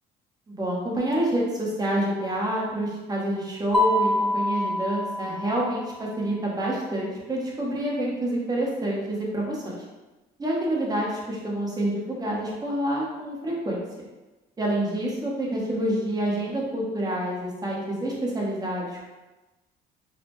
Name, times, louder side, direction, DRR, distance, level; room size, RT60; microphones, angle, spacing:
voice 1, 0.5-9.6 10.4-13.8 14.6-19.0, right 1 dB, 20° right, -3 dB, 0.9 m, -27 dB
Mallet percussion, 3.7-5.8, left 1 dB, ahead, 0.3 m, -25 dB
3.8 x 2.1 x 3.0 m, 1.1 s
cardioid pair, 110°, 17 cm